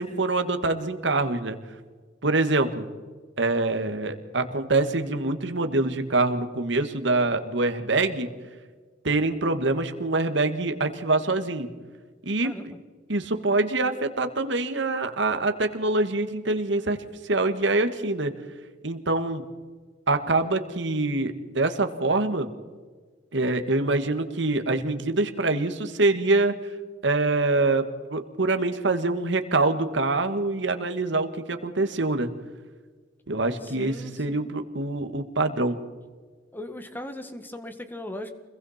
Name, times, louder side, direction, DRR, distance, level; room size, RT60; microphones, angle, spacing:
voice 1, 0.0-1.6 2.2-2.9 3.4-8.3 9.0-11.7 12.2-12.5 13.1-18.3 18.8-19.5 20.1-22.5 23.3-26.5 27.0-32.3 33.3-35.8, right 2 dB, 65° right, 7 dB, 1.7 m, -25 dB
voice 2, 12.4-12.8 33.6-34.5 36.5-38.3, left 1 dB, 10° left, 7 dB, 1.7 m, -38 dB
29.0 x 22.0 x 4.3 m, 1.5 s
head